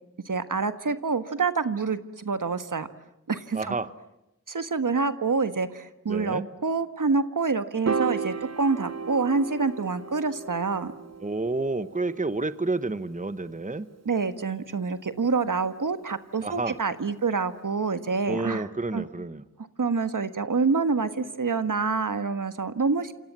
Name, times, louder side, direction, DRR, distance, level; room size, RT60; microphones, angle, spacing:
voice 1, 0.2-2.9 3.3-3.7 4.5-10.9 14.0-18.7 18.9-19.0 19.8-23.1, right 4 dB, 80° right, 11 dB, 1.5 m, -27 dB
voice 2, 3.5-3.9 6.1-6.5 11.2-13.9 16.4-16.8 18.3-19.4, right 3 dB, 25° right, 13 dB, 1.1 m, -30 dB
Piano, 7.9-14.2, right 5 dB, 55° right, 0.9 m, -35 dB
28.5 x 28.0 x 7.5 m, 0.90 s
wide cardioid pair, 70°, 31 cm